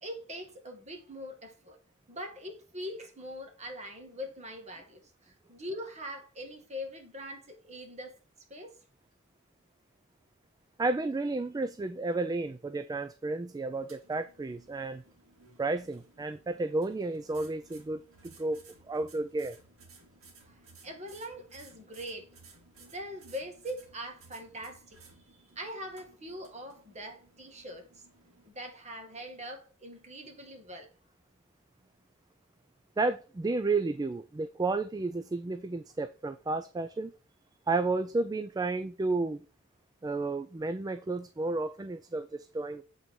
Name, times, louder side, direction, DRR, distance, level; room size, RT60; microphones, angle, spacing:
voice 1, 0.0-1.8 2.1-8.2 8.5-8.8 20.5-22.3 22.8-25.0 25.6-27.9 28.5-30.9, equal, 35° right, 1.8 m, -42 dB
voice 2, 10.8-15.0 15.6-18.6 18.9-19.6 33.0-37.1 37.7-39.4 40.0-42.8, right 3 dB, 20° right, 0.3 m, -32 dB
sound 1, 13.7-28.5, right 3 dB, 75° right, 2.3 m, -58 dB
7.6 x 4.1 x 4.7 m
head